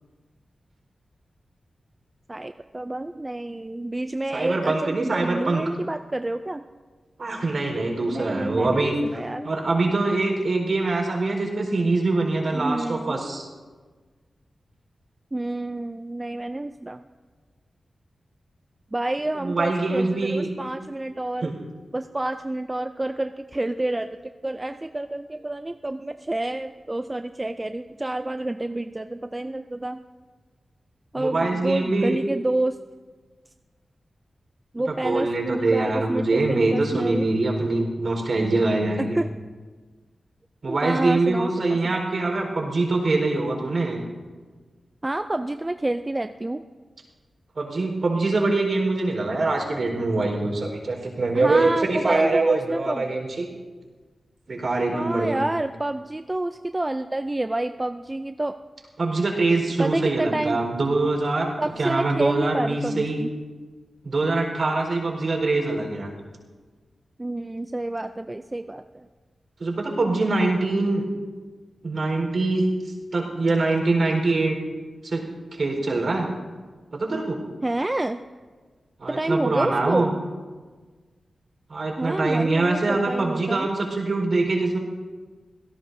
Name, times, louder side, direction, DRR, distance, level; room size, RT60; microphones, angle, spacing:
voice 1, 2.3-6.6 8.1-9.5 12.5-13.1 15.3-17.0 18.9-21.5 21.9-30.0 31.1-32.8 34.7-37.2 39.0-39.3 40.7-41.5 41.8-42.0 45.0-46.6 51.3-53.2 54.9-58.6 59.8-60.6 61.6-63.3 67.2-69.1 77.6-78.2 79.1-80.1 82.0-83.7, right 2 dB, 20° right, 8 dB, 0.4 m, -28 dB
voice 2, 4.3-5.6 7.2-13.5 19.3-20.5 21.4-21.5 31.1-32.2 34.9-39.2 40.6-44.0 47.6-53.3 54.5-55.4 59.0-61.5 61.8-63.2 64.0-66.1 69.6-71.0 71.8-74.6 75.0-75.2 75.5-76.3 76.9-77.4 79.0-80.1 81.7-84.8, right 2 dB, 55° right, 0 dB, 4.3 m, -24 dB
26.5 x 17.5 x 2.7 m, 1.4 s
wide cardioid pair, 130°, 0 cm